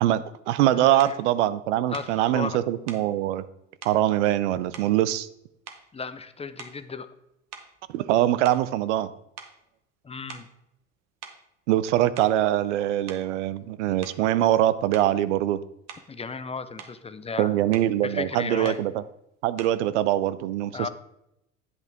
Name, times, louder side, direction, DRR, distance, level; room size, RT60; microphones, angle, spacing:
voice 1, 0.0-3.4 3.8-5.3 7.9-9.1 11.7-15.6 17.4-19.0 19.4-20.9, right 13 dB, 80° right, 15 dB, 0.6 m, -23 dB
voice 2, 0.8-1.2 1.9-2.6 5.9-7.1 10.0-10.5 16.1-17.5 18.0-18.8 20.7-20.9, left 5 dB, 20° left, 12 dB, 0.5 m, -35 dB
sound 1, 1.0-1.2 1.9-2.2 2.9-3.1 3.8-4.0 4.7-5.3 5.6-6.0 6.5-6.9 7.5-9.1 9.4-9.6 10.3-10.6 11.2-11.4 12.0-12.4 13.1-13.3 14.0-14.3 14.9-15.1 15.9-16.2 16.5-17.0 17.7-17.9 18.6-18.9 19.6-19.8, right 7 dB, 50° right, 1.2 m, -45 dB
8.2 x 8.0 x 3.5 m, 0.82 s
hypercardioid pair, 75°, 35 cm